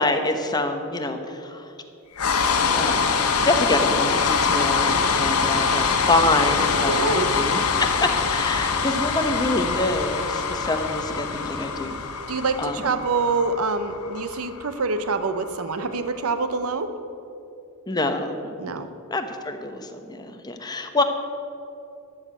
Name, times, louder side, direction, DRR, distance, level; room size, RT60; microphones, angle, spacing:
voice 1, 0.0-1.7 2.7-3.1 3.4-12.0 12.6-12.9 17.9-21.0, left 2 dB, 20° left, 6 dB, 0.9 m, -26 dB
sound 1, 2.2-16.3, left 5 dB, 80° left, 1.1 m, -24 dB
voice 2, 6.9-7.3 12.3-16.9 18.6-18.9, right 4 dB, 70° right, 10 dB, 0.7 m, -25 dB
12.5 x 6.6 x 9.2 m, 2.7 s
head